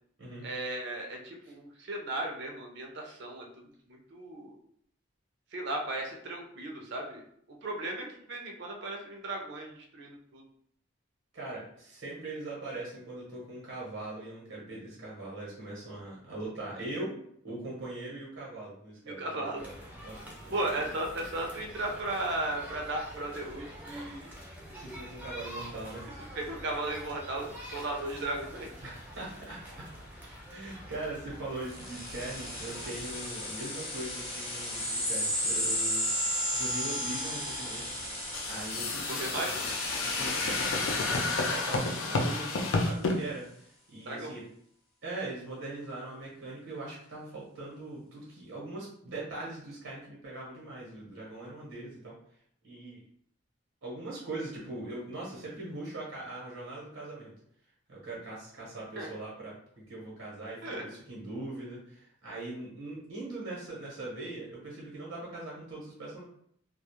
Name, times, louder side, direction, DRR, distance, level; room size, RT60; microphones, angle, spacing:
voice 1, 0.4-3.5 3.9-4.6 5.5-7.2 7.6-10.4 19.0-19.6 20.5-24.3 26.3-28.7 39.0-39.5 44.1-44.3 59.0-59.1 60.6-60.8, right 2 dB, 60° right, 1 dB, 0.5 m, -35 dB
voice 2, 11.3-17.1 17.4-19.7 20.0-20.9 24.8-26.0 28.8-29.9 30.5-36.0 36.5-37.9 38.5-39.2 40.0-40.5 40.9-44.4 45.0-52.1 52.6-53.0 53.8-57.3 57.9-59.6 59.9-66.2, right 2 dB, 90° right, -5 dB, 1.0 m, -41 dB
sound 1, 19.5-33.3, equal, 10° right, 0.4 m, -46 dB
sound 2, 31.7-42.8, left 1 dB, 30° left, 0.7 m, -34 dB
sound 3, 38.3-43.2, left 3 dB, 75° left, 0.4 m, -30 dB
2.2 x 2.0 x 2.9 m, 0.67 s
head